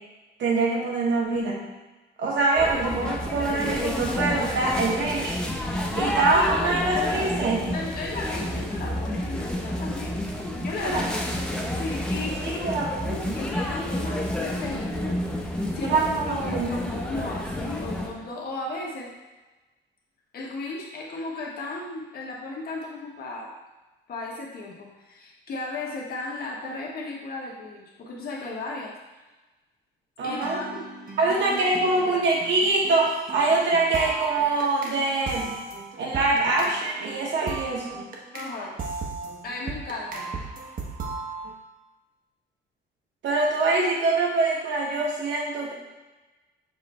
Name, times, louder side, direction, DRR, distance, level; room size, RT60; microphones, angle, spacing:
voice 1, 0.4-1.6 2.2-5.4 5.9-7.7 10.8-11.1 12.4-13.4 15.8-16.8 30.2-30.6 31.2-35.5 36.0-38.0 43.2-45.7, right 3 dB, 70° right, -2 dB, 1.4 m, -24 dB
sound 1, 2.6-18.1, left 1 dB, 5° left, 0.7 m, -30 dB
voice 2, 6.9-10.2 10.5-11.3 11.8-12.9 13.3-15.2 15.7-16.0 16.4-19.1 20.3-23.5 24.1-28.9 30.2-30.8 31.2-32.2 38.3-38.7 39.4-40.3, left 2 dB, 50° left, -3 dB, 1.2 m, -35 dB
sound 2, 30.4-35.0 35.3-38.5 38.8-41.5, right 4 dB, 45° right, 1.0 m, -37 dB
6.9 x 3.2 x 4.2 m, 1.1 s
cardioid pair, 145°, 19 cm